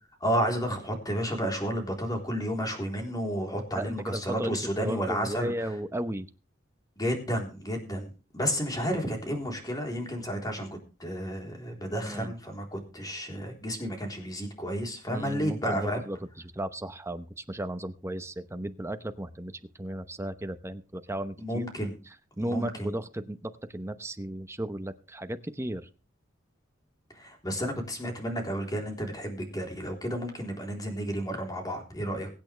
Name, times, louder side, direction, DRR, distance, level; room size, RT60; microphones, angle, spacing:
voice 1, 0.2-5.5 7.0-8.1 8.3-16.0 21.4-22.0 22.4-22.9 27.1-32.3, equal, 20° left, 2 dB, 3.8 m, -31 dB
voice 2, 3.7-6.3 12.0-12.3 15.1-16.2 16.5-19.5 19.8-21.7 22.4-25.9, right 1 dB, 15° right, 9 dB, 0.9 m, -35 dB
23.5 x 8.7 x 3.4 m, 0.34 s
head